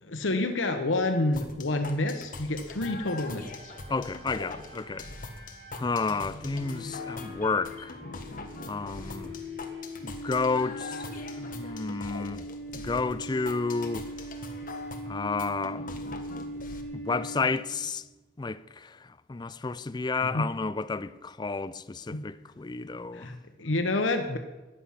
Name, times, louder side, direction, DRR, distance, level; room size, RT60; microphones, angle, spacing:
voice 1, 0.0-3.7 20.2-20.4 22.1-22.3 23.1-24.4, left 2 dB, 85° left, 1.1 m, -28 dB
sound 1, 1.3-16.8, left 3 dB, 45° left, 1.5 m, -42 dB
sound 2, 3.4-17.9, equal, 70° right, 5.9 m, -41 dB
voice 2, 3.9-5.1 5.8-8.0 8.7-9.3 10.0-12.5 12.7-14.1 15.1-15.9 16.9-18.1 18.4-23.3, left 4 dB, 20° left, 0.4 m, -31 dB
14.5 x 10.0 x 5.7 m
head